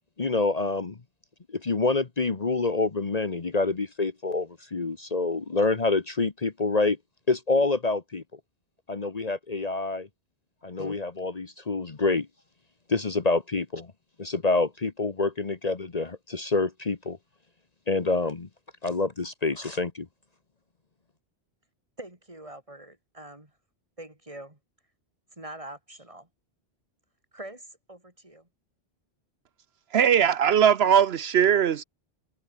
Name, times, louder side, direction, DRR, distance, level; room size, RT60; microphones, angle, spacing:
voice 1, 0.2-1.0 1.5-7.0 7.3-8.4 8.9-10.1 10.6-12.3 12.9-13.9 14.2-17.2 17.9-18.5 18.8-20.1, left 3 dB, 40° left, 1.2 m, -27 dB
voice 2, 22.0-23.5 24.0-24.6 25.4-26.3 27.3-28.5, right 1 dB, 30° right, 3.9 m, -44 dB
voice 3, 29.9-31.8, right 8 dB, 75° right, 1.0 m, -20 dB
omnidirectional pair, 1.1 m